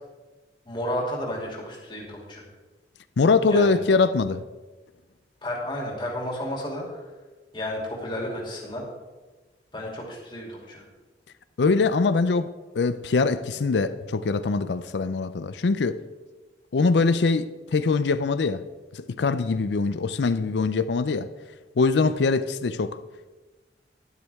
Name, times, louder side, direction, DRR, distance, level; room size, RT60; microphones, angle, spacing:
voice 1, 0.6-2.4 3.5-3.8 5.4-7.0 7.5-8.8 9.7-10.8, equal, 25° left, 2.8 m, -32 dB
voice 2, 3.2-4.4 11.6-16.0 16.7-18.7 18.9-21.3 21.8-23.0, left 4 dB, 80° left, 0.5 m, -23 dB
12.0 x 12.0 x 3.5 m
head